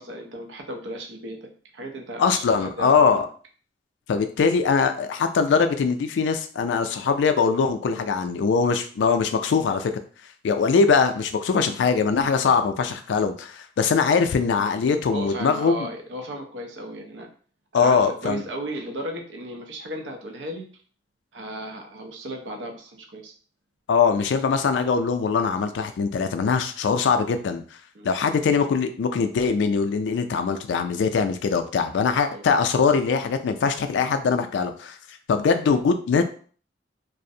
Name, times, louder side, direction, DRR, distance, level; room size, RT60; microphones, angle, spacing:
voice 1, 0.0-1.5 1.7-3.2 15.1-17.3 17.7-20.7 21.3-23.3 27.9-28.1 32.3-32.4, right 1 dB, 80° right, 3 dB, 0.5 m, -35 dB
voice 2, 2.2-3.3 4.1-9.9 10.4-15.9 17.7-18.4 23.9-27.6 28.0-35.0 35.3-36.2, left 5 dB, 75° left, 8 dB, 0.3 m, -22 dB
2.5 x 2.0 x 2.6 m, 0.43 s
head